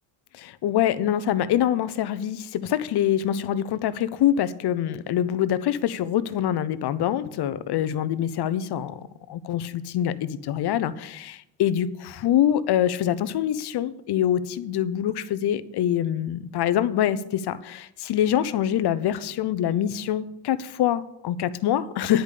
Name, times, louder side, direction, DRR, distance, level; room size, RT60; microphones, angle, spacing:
voice 1, 0.3-9.0 9.3-22.2, left 10 dB, 60° left, 15 dB, 0.8 m, -25 dB
10.5 x 5.1 x 8.3 m, 0.82 s
cardioid pair, 85°, 45 cm